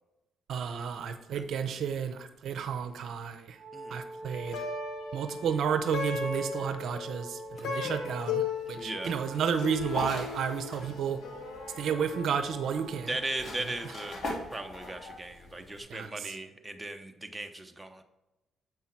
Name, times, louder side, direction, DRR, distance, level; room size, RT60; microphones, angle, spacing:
voice 1, 0.5-3.6 3.9-4.6 5.1-11.2 11.8-13.1 15.9-16.3, right 7 dB, 70° right, 9 dB, 0.6 m, -32 dB
Wind instrument woodwind instrument, 3.6-13.6, right 1 dB, 40° right, 1.7 m, -45 dB
Plucked string instrument, 4.3-13.7, left 5 dB, 85° left, 1.2 m, -38 dB
sound 1, 7.5-15.8, left 1 dB, 45° left, 2.6 m, -42 dB
voice 2, 8.7-9.1 13.1-14.2 14.5-18.0, right 2 dB, 10° right, 5 dB, 1.0 m, -37 dB
7.7 x 5.5 x 4.5 m, 0.99 s
cardioid pair, 80°, 0 cm